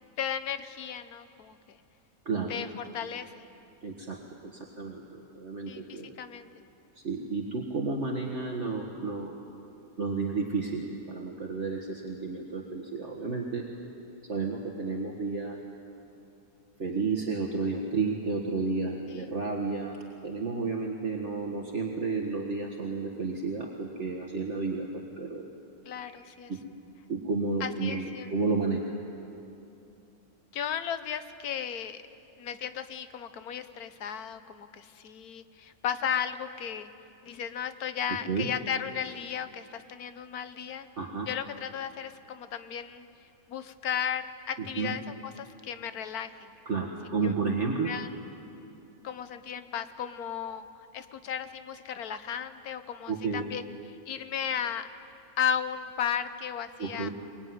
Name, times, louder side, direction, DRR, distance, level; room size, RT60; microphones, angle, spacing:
voice 1, 0.2-1.8 2.5-3.3 5.7-6.5 19.1-19.3 25.9-26.5 27.6-28.3 30.5-32.0 32.4-36.9 37.2-40.9 41.3-43.1 43.5-46.3 47.2-47.3 47.8-48.1 49.0-50.6 50.9-53.7 54.1-54.9 55.4-57.1, left 8 dB, 80° left, 11 dB, 1.5 m, -35 dB
voice 2, 2.3-2.6 3.8-6.1 7.0-9.3 10.0-13.7 14.3-15.6 16.8-25.5 26.1-26.2 26.5-26.6 27.1-29.0 38.3-38.5 41.0-41.3 44.6-45.0 46.7-48.0 53.1-53.5 56.8-57.1, right 4 dB, 50° right, 0 dB, 1.9 m, -32 dB
23.5 x 21.5 x 9.6 m, 2.7 s
omnidirectional pair, 1.6 m